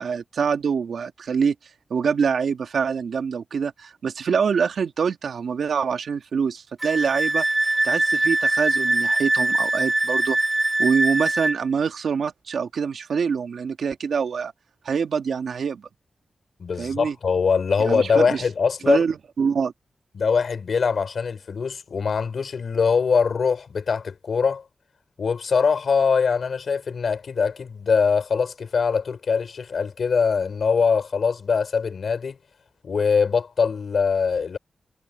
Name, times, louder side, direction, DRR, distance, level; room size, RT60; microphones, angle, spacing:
voice 1, 0.0-1.6 1.9-7.5 7.8-10.4 10.8-14.5 14.9-15.9 16.8-17.2 17.8-18.4 18.9-19.7, right 6 dB, 90° right, 1.9 m, -25 dB
Wind instrument woodwind instrument, 6.8-11.6, right 2 dB, 15° right, 1.6 m, -22 dB
voice 2, 16.6-19.0 20.1-24.6 25.2-32.4 32.8-34.6, left 5 dB, 65° left, 4.2 m, -22 dB
wide cardioid pair, 120°, 0 cm